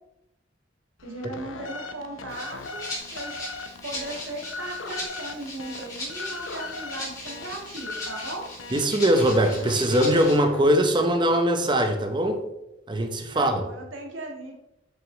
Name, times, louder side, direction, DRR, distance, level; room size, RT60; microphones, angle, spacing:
sound 1, 1.0-11.6, left 3 dB, 85° left, 0.6 m, -39 dB
voice 1, 1.0-3.4 3.8-8.5 13.3-14.7, right 2 dB, 80° right, 0 dB, 1.6 m, -37 dB
Rattle (instrument), 2.3-10.4, left 1 dB, 20° left, 2.7 m, -38 dB
voice 2, 8.7-12.4 12.9-13.6, right 1 dB, 25° right, 5 dB, 0.7 m, -21 dB
7.2 x 6.2 x 3.1 m, 0.90 s
head